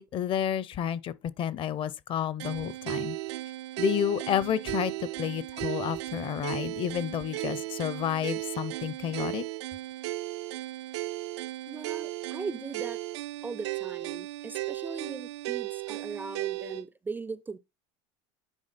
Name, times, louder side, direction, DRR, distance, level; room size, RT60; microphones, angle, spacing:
voice 1, 0.0-3.2 3.8-9.4, left 10 dB, 40° left, 0.6 m, -30 dB
sound 1, 2.4-16.8, right 18 dB, 85° right, 0.5 m, -36 dB
voice 2, 11.7-13.0 13.4-17.6, right 4 dB, 15° right, 0.4 m, -39 dB
9.9 x 3.7 x 4.0 m
supercardioid pair, 110°, 14 cm